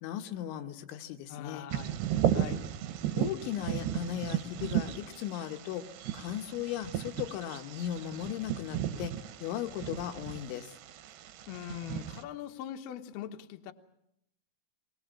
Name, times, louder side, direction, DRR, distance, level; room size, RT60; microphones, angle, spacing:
voice 1, 0.0-1.7 3.1-5.8 6.1-9.1 9.4-10.7, left 11 dB, 85° left, 6 dB, 3.5 m, -37 dB
voice 2, 1.3-2.6 11.5-13.7, left 10 dB, 70° left, 6 dB, 2.7 m, -42 dB
Bird vocalization bird call bird song, 1.7-12.2, right 11 dB, 75° right, 2.9 m, -35 dB
23.0 x 21.0 x 7.2 m, 0.77 s
omnidirectional pair, 5.2 m